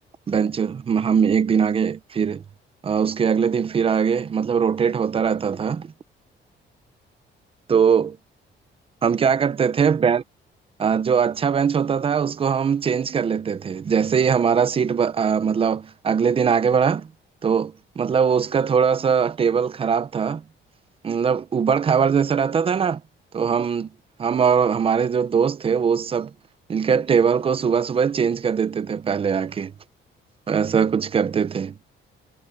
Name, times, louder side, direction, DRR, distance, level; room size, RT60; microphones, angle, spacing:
voice 1, 0.3-2.4 2.8-5.9 7.7-8.1 9.0-10.2 10.8-17.1 17.4-20.4 21.0-23.0 23.3-23.9 24.2-26.3 26.7-29.7 30.5-31.7, right 6 dB, 25° right, 0.6 m, -21 dB
cardioid pair, 175°, 21 cm